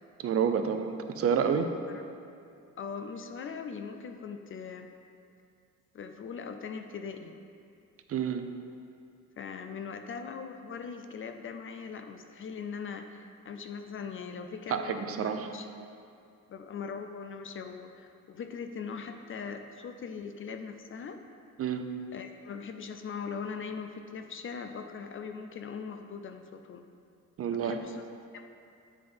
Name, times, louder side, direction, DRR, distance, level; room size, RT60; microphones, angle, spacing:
voice 1, 0.2-1.7 8.1-8.5 14.7-15.5 21.6-21.9 27.4-27.8, right 7 dB, 50° right, 7 dB, 0.6 m, -29 dB
voice 2, 2.8-4.9 5.9-7.3 9.4-15.7 16.5-21.2 22.1-26.8 27.5-28.0 28.3-28.5, left 6 dB, 45° left, 6 dB, 0.4 m, -40 dB
7.7 x 3.6 x 5.1 m, 2.5 s
cardioid pair, 90°, 30 cm